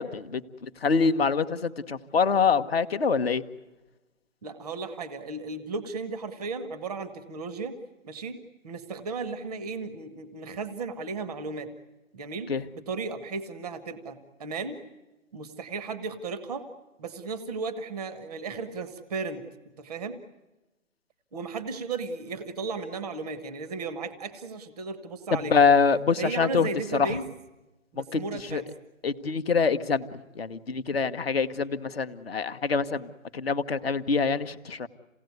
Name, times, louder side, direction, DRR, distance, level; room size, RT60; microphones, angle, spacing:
voice 1, 0.0-3.4 12.5-12.6 25.3-26.7 27.0-27.1 28.1-28.2 28.5-28.6 29.0-34.9, left 5 dB, 45° left, 11 dB, 1.4 m, -25 dB
voice 2, 4.4-7.8 8.0-8.4 8.6-11.7 12.1-14.8 15.3-16.7 17.0-19.4 19.8-20.2 21.3-25.6 26.2-27.3 27.9-28.7, right 4 dB, ahead, 11 dB, 0.8 m, -35 dB
28.0 x 18.0 x 9.4 m, 1.1 s
hypercardioid pair, 170°, 41 cm